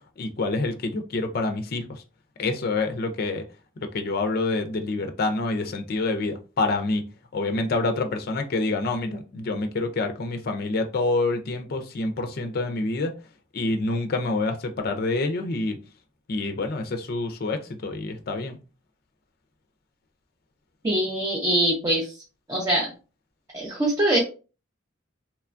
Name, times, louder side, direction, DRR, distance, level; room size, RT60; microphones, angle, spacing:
voice 1, 0.2-2.0 2.4-3.4 3.8-7.0 7.3-13.1 13.5-15.8 16.3-18.6, left 3 dB, 50° left, 0.4 m, -27 dB
voice 2, 20.8-22.1 22.5-22.9 23.5-24.2, right 1 dB, 20° right, 0.5 m, -23 dB
3.0 x 2.2 x 2.4 m
head